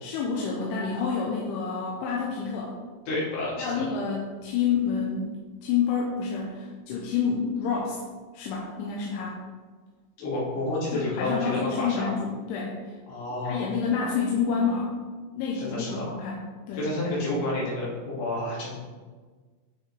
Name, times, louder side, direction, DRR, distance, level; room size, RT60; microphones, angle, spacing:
voice 1, 0.0-2.8 3.6-5.3 5.6-8.0 8.3-9.4 10.9-13.0 13.4-14.9 15.3-16.8, left 6 dB, 90° left, -3 dB, 3.3 m, -28 dB
voice 2, 3.1-3.8 10.2-12.1 13.1-13.7 15.5-16.1 16.8-18.7, left 2 dB, 75° left, -7 dB, 4.9 m, -30 dB
9.4 x 5.9 x 3.4 m, 1.4 s
omnidirectional pair, 5.4 m